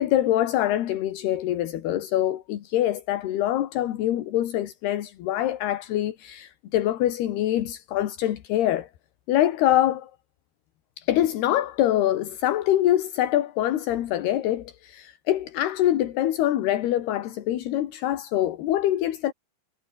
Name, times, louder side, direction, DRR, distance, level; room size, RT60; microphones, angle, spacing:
voice 1, 0.0-8.9 9.3-10.1 11.0-19.3, left 13 dB, 75° left, 3.6 m, -24 dB
omnidirectional pair, 4.7 m